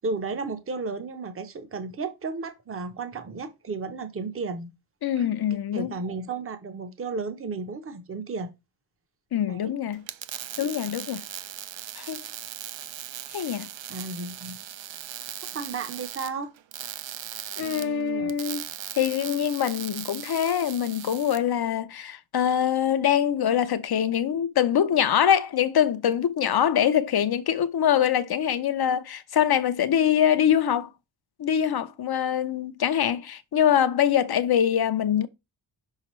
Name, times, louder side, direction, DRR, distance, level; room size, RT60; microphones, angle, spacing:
voice 1, 0.0-4.7 5.2-5.3 5.7-8.5 9.5-9.7 13.9-14.6 15.5-16.5 17.6-18.3, right 4 dB, 30° right, 0.7 m, -33 dB
voice 2, 5.0-5.9 9.3-10.0 10.6-11.2 12.0-12.3 13.3-13.7 17.6-18.7 18.9-30.9 31.4-35.3, left 9 dB, 55° left, 0.6 m, -24 dB
sound 1, 9.9-21.4, right 11 dB, 80° right, 0.6 m, -38 dB
5.8 x 5.7 x 3.0 m
wide cardioid pair, 170°, 46 cm